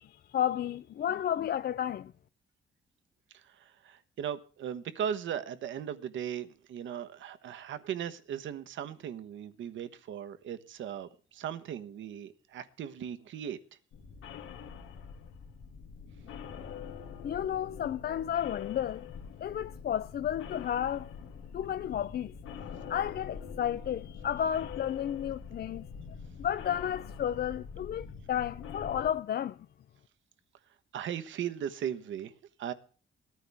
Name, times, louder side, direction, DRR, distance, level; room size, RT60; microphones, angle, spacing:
voice 1, 0.0-2.1 17.2-19.1 19.4-21.1 21.5-22.3 22.9-25.8 26.4-29.6, left 10 dB, 55° left, 0.6 m, -32 dB
voice 2, 3.3-13.6 30.9-32.3 32.6-32.7, right 9 dB, 70° right, 1.2 m, -38 dB
sound 1, 13.9-29.1, left 7 dB, 85° left, 2.5 m, -44 dB
19.5 x 14.0 x 3.5 m
cardioid pair, 90°, 20 cm